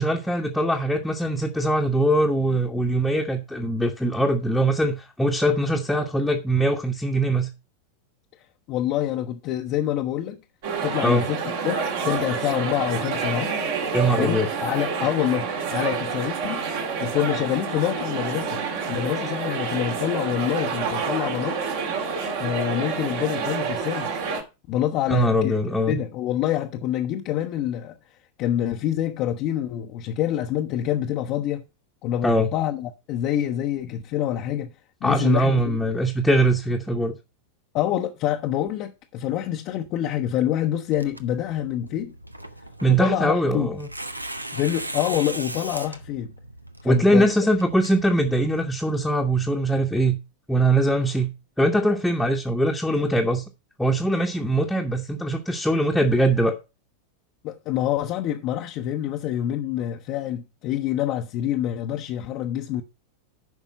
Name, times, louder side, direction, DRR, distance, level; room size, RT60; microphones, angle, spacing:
voice 1, 0.0-7.5 11.0-11.3 13.9-14.5 25.1-26.0 32.2-32.5 35.0-37.2 42.8-43.9 46.8-50.2 50.5-51.3 51.6-53.4 53.8-56.6, right 1 dB, 5° left, 1.1 m, -22 dB
voice 2, 8.7-10.4 10.8-13.5 14.2-16.6 17.0-18.6 18.9-21.6 22.4-24.2 24.7-25.6 25.9-27.9 28.4-31.6 32.0-34.7 35.0-35.8 37.7-42.1 42.8-43.7 44.5-46.3 46.8-47.3 57.4-62.8, left 11 dB, 40° left, 0.8 m, -26 dB
sound 1, 10.6-24.4, right 5 dB, 55° right, 2.0 m, -28 dB
Tearing, 40.9-48.7, right 1 dB, 85° right, 0.7 m, -38 dB
9.3 x 5.5 x 5.5 m
figure-of-eight pair, 90°, 0 cm